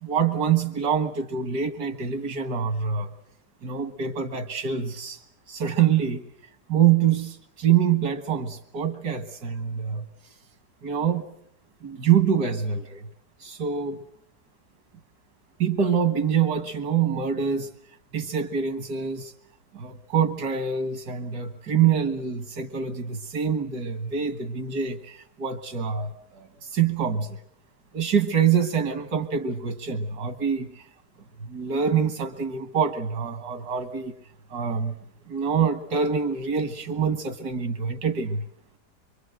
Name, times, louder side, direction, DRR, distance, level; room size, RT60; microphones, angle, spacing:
voice 1, 0.0-3.1 3.6-5.2 5.5-6.3 6.7-10.1 10.8-11.3 11.8-13.1 13.4-14.0 15.6-17.7 18.1-19.3 19.7-27.4 27.9-30.8 31.4-34.1 34.5-35.0 35.3-38.5, right 7 dB, 80° right, 9 dB, 2.0 m, -25 dB
26.0 x 24.0 x 7.9 m, 0.67 s
omnidirectional pair, 1.7 m